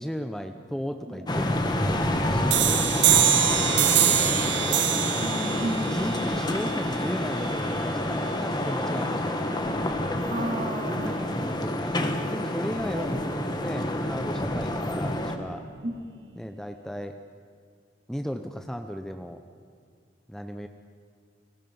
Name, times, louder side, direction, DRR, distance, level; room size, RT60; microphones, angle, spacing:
voice 1, 0.0-2.9 3.4-4.8 5.7-9.8 10.9-15.7 16.4-17.1 18.1-19.4 20.3-20.7, equal, 5° left, 6 dB, 0.7 m, -36 dB
sound 1, 1.3-15.4, left 1 dB, 25° left, 1.6 m, -28 dB
sound 2, 2.5-7.9, right 11 dB, 70° right, 0.9 m, -25 dB
voice 2, 5.2-6.3 10.3-11.4 12.9-13.1 15.8-16.4, right 1 dB, 40° right, 2 dB, 2.9 m, -34 dB
29.5 x 20.5 x 5.5 m, 2.2 s
head